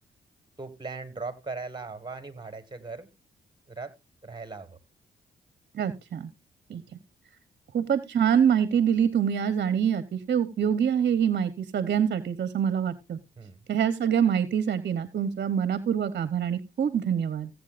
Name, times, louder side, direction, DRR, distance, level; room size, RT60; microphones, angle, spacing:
voice 1, 0.6-3.1 3.7-3.9 4.2-4.8 13.4-13.6, right 4 dB, 25° right, 1.7 m, -38 dB
voice 2, 5.7-6.3 6.7-6.8 7.7-13.2 13.7-17.5, right 8 dB, 55° right, 0.9 m, -25 dB
16.0 x 8.2 x 2.5 m
cardioid pair, 65°, 19 cm